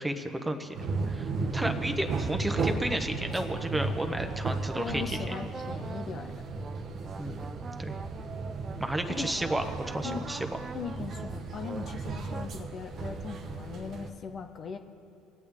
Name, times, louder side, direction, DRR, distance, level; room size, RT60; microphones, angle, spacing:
voice 1, 0.0-5.5 7.2-7.5 7.8-7.9 8.8-10.6, right 1 dB, 10° right, 6 dB, 1.2 m, -33 dB
sound 1, 0.7-14.1, right 3 dB, 50° right, 1.0 m, -35 dB
sound 2, 2.5-12.6, right 5 dB, 30° right, 0.4 m, -45 dB
voice 2, 4.6-6.3 9.1-9.3 10.0-10.2 10.7-14.8, left 6 dB, 45° left, 6 dB, 0.8 m, -39 dB
22.5 x 8.4 x 3.6 m, 2.6 s
supercardioid pair, 80°, 0 cm